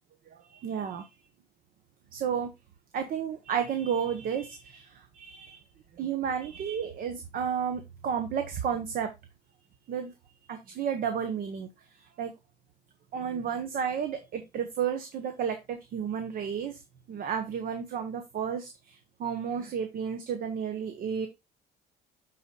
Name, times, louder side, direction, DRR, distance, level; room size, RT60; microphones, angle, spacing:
voice 1, 0.5-1.1 2.1-2.5 2.9-5.6 6.0-9.1 9.9-10.1 10.5-11.7 12.2-12.3 13.1-16.8 17.1-21.3, right 7 dB, 60° right, 7 dB, 1.0 m, -32 dB
12.5 x 4.3 x 2.3 m, 0.22 s
cardioid pair, 110°, 17 cm